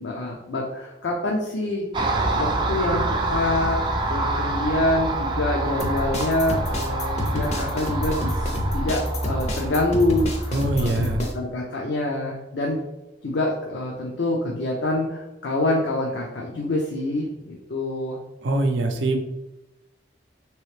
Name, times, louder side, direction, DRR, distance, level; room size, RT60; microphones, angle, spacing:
voice 1, 0.0-1.9 2.4-3.8 4.1-10.9 11.3-12.8 13.2-18.2, left 1 dB, 80° left, -1 dB, 0.6 m, -26 dB
Car passing by, 1.9-11.3, right 2 dB, 25° right, 0.3 m, -27 dB
sound 1, 5.8-11.3, left 1 dB, 35° left, 0.5 m, -29 dB
voice 2, 10.5-11.3 18.4-19.2, right 2 dB, 90° right, 4 dB, 0.5 m, -23 dB
3.1 x 3.0 x 3.2 m, 0.96 s
head